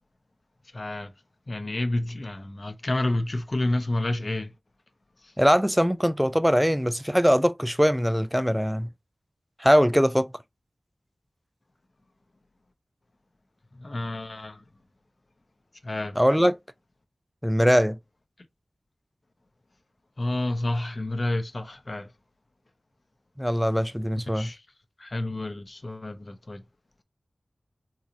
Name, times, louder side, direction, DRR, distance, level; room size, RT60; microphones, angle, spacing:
voice 1, 0.7-1.1 1.5-4.5 5.2-5.3 13.7-14.6 15.8-16.2 20.2-22.1 24.3-24.6 25.0-26.6, left 1 dB, 45° left, 0.7 m, -29 dB
voice 2, 5.4-8.9 9.6-10.3 16.2-16.6 17.4-18.0 23.4-24.5, equal, ahead, 0.3 m, -21 dB
3.8 x 2.6 x 2.9 m
wide cardioid pair, 70°, 0 cm